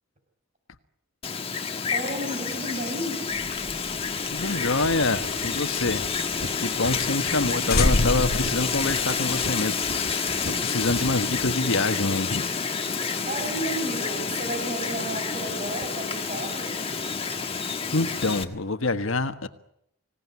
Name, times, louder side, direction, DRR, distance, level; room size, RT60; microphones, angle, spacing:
Wind, 1.2-18.4, left 5 dB, 25° left, 1.5 m, -29 dB
voice 1, 1.9-3.3 13.2-16.9, right 1 dB, 35° right, 5.4 m, -33 dB
sound 1, 3.3-6.2 6.5-6.6 6.9-7.0 7.3-7.4 7.7-9.4, left 2 dB, 45° left, 0.9 m, -28 dB
voice 2, 4.3-6.1 6.6-12.5 17.9-19.5, left 2 dB, 70° left, 1.5 m, -26 dB
sound 2, 4.8-11.8, right 1 dB, 65° right, 1.8 m, -41 dB
25.5 x 17.5 x 9.7 m
head